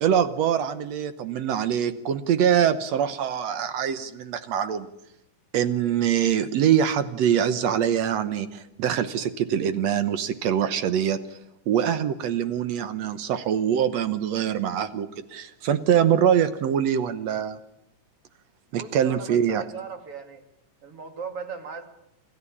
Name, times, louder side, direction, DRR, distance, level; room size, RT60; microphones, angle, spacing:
voice 1, 0.0-4.9 5.5-11.4 11.7-17.6 18.7-19.6, right 9 dB, 65° right, 12 dB, 1.9 m, -24 dB
voice 2, 18.8-20.4 20.8-21.9, right 6 dB, 45° right, 7 dB, 2.9 m, -38 dB
27.5 x 14.0 x 8.6 m, 0.83 s
omnidirectional pair, 3.8 m